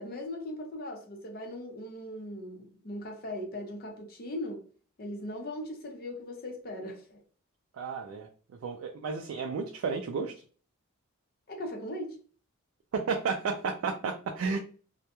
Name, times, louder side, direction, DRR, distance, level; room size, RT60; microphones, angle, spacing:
voice 1, 0.0-4.7 5.0-7.2 11.5-12.2, left 1 dB, 45° left, 0.6 m, -39 dB
voice 2, 7.7-8.3 8.6-10.4 12.9-14.6, right 5 dB, 70° right, 0.3 m, -32 dB
2.2 x 2.1 x 2.8 m
head